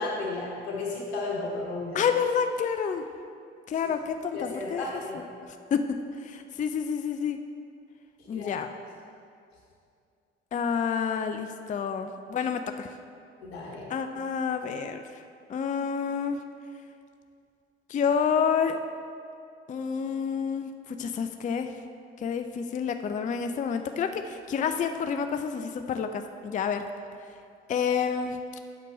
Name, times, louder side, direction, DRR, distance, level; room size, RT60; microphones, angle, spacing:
voice 1, 0.0-2.0 4.3-5.2 8.3-8.6 13.4-13.9, left 2 dB, 75° left, -2 dB, 1.0 m, -33 dB
voice 2, 1.9-3.0 3.7-4.8 5.1-5.2 5.7-5.8 6.2-7.4 8.3-8.7 10.5-12.9 13.9-15.2 15.5-16.4 17.9-18.8 19.7-21.7 22.2-26.8 27.7-28.4, left 6 dB, 25° left, 7 dB, 0.4 m, -29 dB
8.6 x 7.4 x 4.1 m, 2.4 s
figure-of-eight pair, 40°, 31 cm